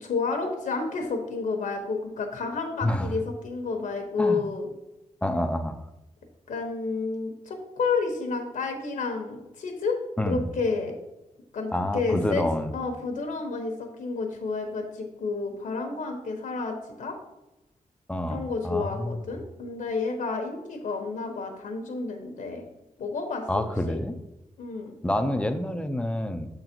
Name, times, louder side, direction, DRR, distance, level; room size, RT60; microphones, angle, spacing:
voice 1, 0.0-4.7 6.5-10.0 10.3-10.9 11.5-12.4 12.7-17.2 18.3-22.6 23.0-24.0 24.6-24.9, left 4 dB, 75° left, 3 dB, 1.0 m, -30 dB
voice 2, 2.8-3.1 4.2-4.4 5.2-5.8 10.2-10.5 11.7-12.8 18.1-19.2 23.5-24.1 25.0-26.5, left 1 dB, 10° left, 8 dB, 0.4 m, -28 dB
6.6 x 3.9 x 4.4 m, 0.95 s
wide cardioid pair, 110°, 14 cm